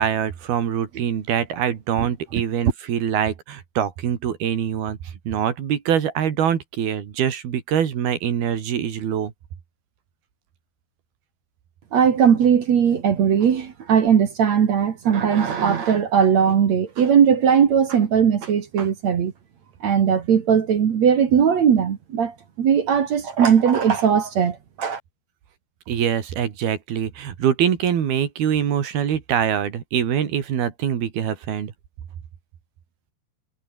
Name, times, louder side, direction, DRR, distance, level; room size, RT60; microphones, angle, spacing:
voice 1, 0.0-5.0 5.3-9.3 25.9-31.7, right 9 dB, 65° right, 4.4 m, -24 dB
voice 2, 11.9-19.3 19.8-25.0, right 7 dB, 50° right, 2.5 m, -19 dB
omnidirectional pair, 4.8 m